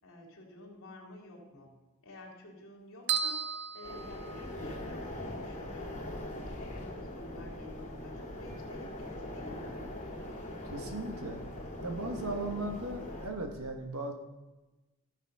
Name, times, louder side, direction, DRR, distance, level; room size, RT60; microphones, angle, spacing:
voice 1, 0.0-9.8, left 1 dB, 65° left, -1 dB, 3.0 m, -51 dB
sound 1, 3.1-4.9, right 7 dB, 50° right, 0.5 m, -35 dB
sound 2, 3.8-13.3, left 1 dB, 35° left, 2.8 m, -41 dB
sound 3, 6.2-6.3 6.8-13.6, left 1 dB, 10° left, 0.8 m, -53 dB
voice 2, 10.7-11.4 11.8-14.1, right 2 dB, 80° right, 4 dB, 1.5 m, -37 dB
14.0 x 7.3 x 5.6 m, 1.1 s
head